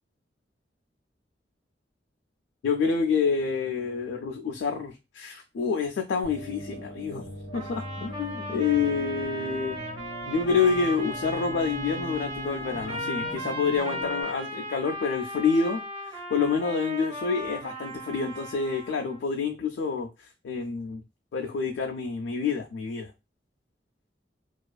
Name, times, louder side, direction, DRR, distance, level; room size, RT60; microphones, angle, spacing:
voice 1, 2.6-9.8 10.3-15.8 16.1-21.0 21.3-23.1, left 5 dB, 85° left, 2 dB, 0.3 m, -28 dB
sound 1, 6.2-14.2, equal, 80° right, 1.1 m, -40 dB
sound 2, 7.5-19.2, equal, 30° right, 0.6 m, -36 dB
2.4 x 2.3 x 2.2 m, 0.25 s
head